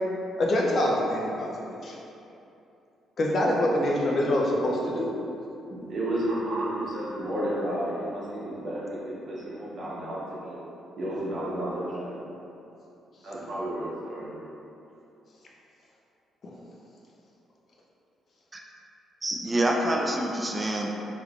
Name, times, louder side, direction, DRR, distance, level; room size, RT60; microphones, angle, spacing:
voice 1, 0.4-2.0 3.2-5.1 16.4-16.5, left 1 dB, 50° left, -2 dB, 0.5 m, -25 dB
voice 2, 5.7-10.6 11.0-12.2 13.2-14.4, right 1 dB, 55° right, -7 dB, 0.9 m, -32 dB
voice 3, 19.2-20.9, right 1 dB, 20° right, 0 dB, 0.3 m, -26 dB
3.1 x 3.1 x 2.5 m, 2.8 s
cardioid pair, 90°, 0 cm